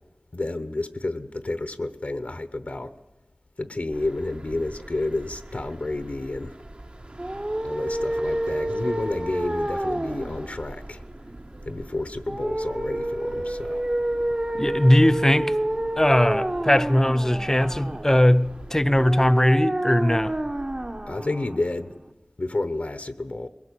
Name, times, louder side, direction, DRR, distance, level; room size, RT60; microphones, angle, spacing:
voice 1, 0.3-3.0 3.6-6.6 7.6-11.0 11.6-13.8 21.1-21.9 22.4-23.5, left 2 dB, 65° left, 1.0 m, -30 dB
sound 1, 3.9-19.3, right 1 dB, 50° right, 1.5 m, -43 dB
sound 2, 7.1-22.1, right 1 dB, 35° right, 1.1 m, -29 dB
voice 2, 14.5-15.6 16.0-20.4, left 1 dB, 20° left, 0.7 m, -19 dB
21.5 x 18.0 x 8.4 m
wide cardioid pair, 45°, 3 cm